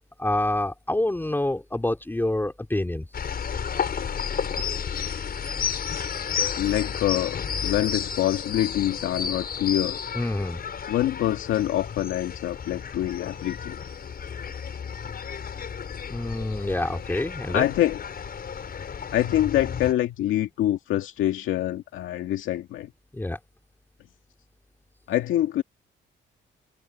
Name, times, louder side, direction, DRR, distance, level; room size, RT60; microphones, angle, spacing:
voice 1, 0.2-3.1 10.1-10.6 16.1-17.7 23.1-23.4, left 1 dB, 10° left, 3.5 m, -27 dB
sound 1, 3.1-19.9, left 7 dB, 50° left, 6.4 m, -32 dB
voice 2, 6.6-10.0 10.9-13.8 17.5-18.0 19.1-22.9 25.1-25.6, left 13 dB, 85° left, 2.2 m, -25 dB
cardioid pair, 90°, 20 cm